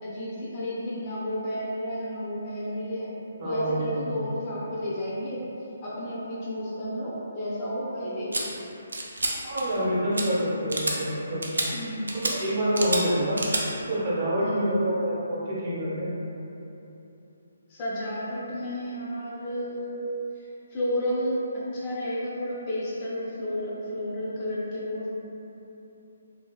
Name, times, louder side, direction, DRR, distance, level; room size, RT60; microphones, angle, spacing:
voice 1, 0.0-3.1 3.4-5.4 5.8-8.5 11.7-12.1 14.4-14.7 17.7-20.0 20.7-25.1, equal, 30° left, -8 dB, 0.6 m, -31 dB
voice 2, 3.4-4.3 9.4-11.4 12.3-13.5 13.9-16.1, equal, 35° right, -9 dB, 1.0 m, -27 dB
sound 1, 8.3-8.4 8.9-9.3 9.6-9.8 10.1-10.2 10.7-11.0 11.4-11.7 12.1-12.3 12.7-13.0 13.4-13.6, right 2 dB, 80° right, 0.4 m, -28 dB
2.7 x 2.7 x 2.3 m, 2.9 s
figure-of-eight pair, 145°, 0 cm